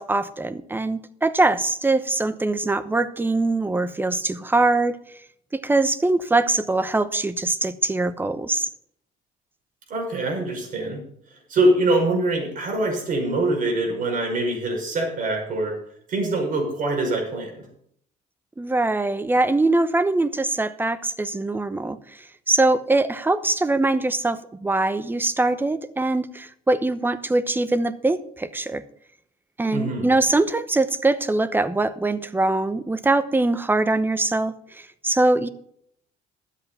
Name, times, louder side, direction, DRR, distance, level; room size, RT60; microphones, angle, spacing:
voice 1, 0.0-5.0 5.5-8.7 18.6-22.0 22.5-28.8 29.6-35.5, right 2 dB, 10° right, 13 dB, 0.9 m, -22 dB
voice 2, 9.9-11.0 11.5-15.7 16.1-17.7 29.7-30.1, right 2 dB, 50° right, 2 dB, 5.7 m, -24 dB
12.5 x 8.4 x 5.6 m, 0.67 s
cardioid pair, 110°, 17 cm